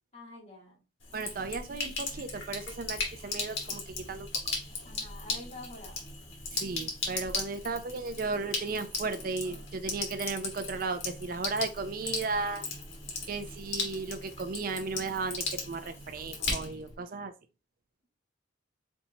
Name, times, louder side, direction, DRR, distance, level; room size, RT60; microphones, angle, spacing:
voice 1, 0.1-0.8 4.8-6.0, left 2 dB, 35° left, -5 dB, 2.7 m, -47 dB
Sink (filling or washing), 1.0-16.9, left 3 dB, 90° left, 1.8 m, -37 dB
voice 2, 1.1-4.3 6.5-12.6 13.3-17.3, right 4 dB, 50° right, 9 dB, 0.4 m, -35 dB
4.4 x 4.2 x 2.7 m, 0.29 s
head